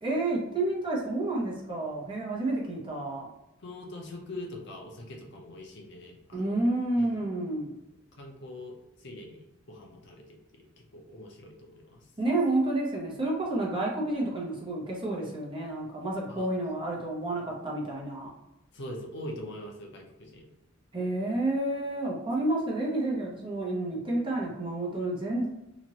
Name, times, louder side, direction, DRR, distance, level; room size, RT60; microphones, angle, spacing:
voice 1, 0.0-3.3 6.3-7.7 12.2-18.3 20.9-25.5, right 2 dB, 25° right, -4 dB, 0.9 m, -30 dB
voice 2, 3.6-6.6 7.0-7.1 8.2-8.7 9.0-9.4 9.7-10.6 10.9-12.0 16.3-16.5 18.7-20.5, left 1 dB, 60° left, 0 dB, 0.7 m, -42 dB
2.9 x 2.5 x 2.9 m, 0.92 s
head